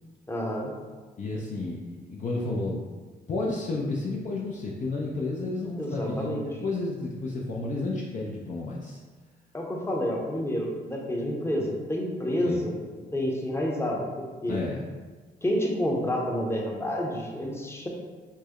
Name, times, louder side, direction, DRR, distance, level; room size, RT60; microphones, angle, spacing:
voice 1, 0.3-0.7 5.8-6.5 9.5-12.7 13.1-14.6 15.4-17.9, equal, 10° left, -1 dB, 0.8 m, -29 dB
voice 2, 1.2-2.8 3.3-9.0 12.4-12.6 14.5-14.8, left 2 dB, 35° left, -4 dB, 0.6 m, -31 dB
4.5 x 2.1 x 2.9 m, 1.4 s
hypercardioid pair, 50°, 21 cm